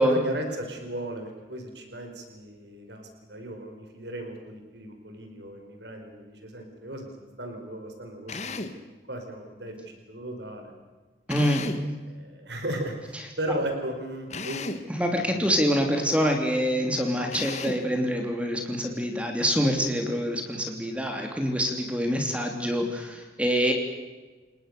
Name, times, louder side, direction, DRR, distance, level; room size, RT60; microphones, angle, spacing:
voice 1, 0.0-8.6 9.1-10.7 12.0-14.6 15.0-15.6, right 1 dB, 75° right, 5 dB, 5.0 m, -36 dB
Drill, 8.3-8.8 11.3-11.9 14.3-14.9 17.3-17.9, left 3 dB, 40° left, 1.5 m, -35 dB
voice 2, 11.3-11.6 15.0-23.7, equal, 5° right, 3 dB, 3.0 m, -25 dB
30.0 x 19.5 x 6.8 m, 1.2 s
head